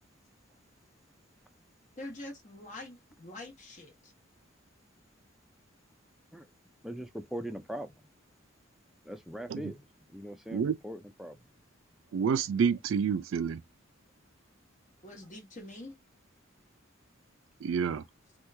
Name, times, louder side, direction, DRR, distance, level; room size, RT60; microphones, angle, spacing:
voice 1, 2.0-4.1 15.0-15.9, left 2 dB, 40° left, 1.2 m, -45 dB
voice 2, 6.8-8.1 9.0-11.4, equal, ahead, 0.4 m, -41 dB
voice 3, 12.1-13.6 17.6-18.0, right 6 dB, 75° right, 0.3 m, -28 dB
3.0 x 2.3 x 3.2 m
head